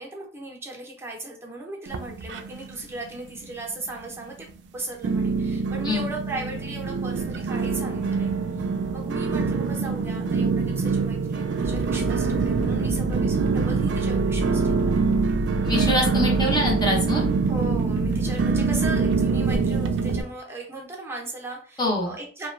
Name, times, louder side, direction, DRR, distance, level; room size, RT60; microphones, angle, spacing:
voice 1, 0.0-8.6 8.9-15.0 17.4-22.5, right 2 dB, 15° right, -1 dB, 0.7 m, -37 dB
sound 1, 1.9-2.8 3.1-3.7 4.2-4.3 5.0-20.2, right 4 dB, 80° right, 0.3 m, -25 dB
sound 2, 11.6-19.4, equal, 45° right, 0.7 m, -32 dB
voice 2, 15.6-17.2 21.8-22.1, left 1 dB, 25° left, -1 dB, 0.7 m, -24 dB
2.8 x 2.2 x 2.3 m, 0.41 s
head